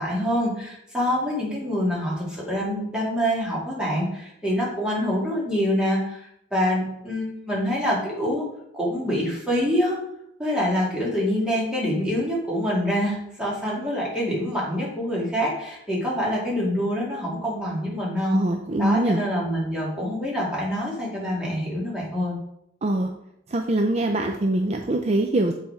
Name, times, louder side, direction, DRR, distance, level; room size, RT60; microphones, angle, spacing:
voice 1, 0.0-6.2 6.5-8.4 8.7-10.0 10.4-18.4 18.8-22.4, equal, 5° right, -6 dB, 2.1 m, -25 dB
voice 2, 18.3-19.2 22.8-23.1 23.5-25.5, right 1 dB, 35° right, 4 dB, 0.5 m, -23 dB
7.5 x 4.2 x 4.5 m, 0.76 s
head